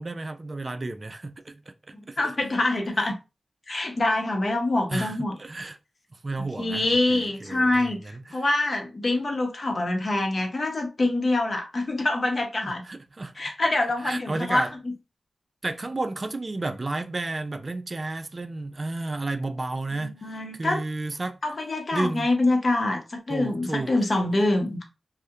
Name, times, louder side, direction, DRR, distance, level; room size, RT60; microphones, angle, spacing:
voice 1, 0.0-2.2 4.9-5.8 6.2-8.4 12.6-13.3 14.0-14.7 15.6-21.4 21.9-22.3 23.3-23.9, right 2 dB, 45° right, 0.3 m, -32 dB
voice 2, 1.9-3.2 3.7-5.4 6.4-12.8 13.4-14.9 19.9-20.8 21.4-24.9, left 2 dB, 55° left, 0.7 m, -25 dB
2.3 x 2.0 x 2.7 m
cardioid pair, 45°, 0 cm